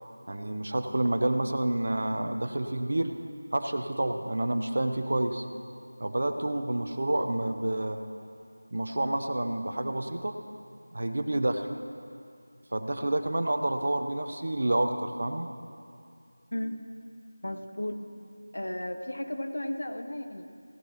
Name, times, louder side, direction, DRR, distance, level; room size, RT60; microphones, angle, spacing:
voice 1, 0.3-3.1 3.5-5.4 6.0-8.0 8.7-10.4 10.9-11.7 12.7-15.5, right 1 dB, 55° right, 7 dB, 0.8 m, -29 dB
voice 2, 17.4-18.0 18.5-20.5, left 1 dB, 65° left, 6 dB, 1.0 m, -34 dB
17.0 x 9.9 x 3.0 m, 2.4 s
figure-of-eight pair, 170°, 0 cm